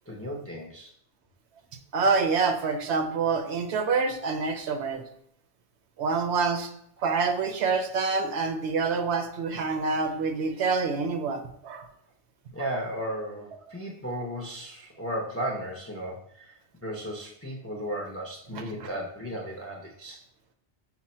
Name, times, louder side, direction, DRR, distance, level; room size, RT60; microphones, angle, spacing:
voice 1, 0.1-0.9 12.5-20.2, equal, 20° left, -1 dB, 0.4 m, -35 dB
voice 2, 1.9-5.0 6.0-6.7 7.0-11.9 18.5-18.9, right 4 dB, 75° right, 6 dB, 0.8 m, -27 dB
6.0 x 2.1 x 4.2 m, 0.69 s
omnidirectional pair, 1.2 m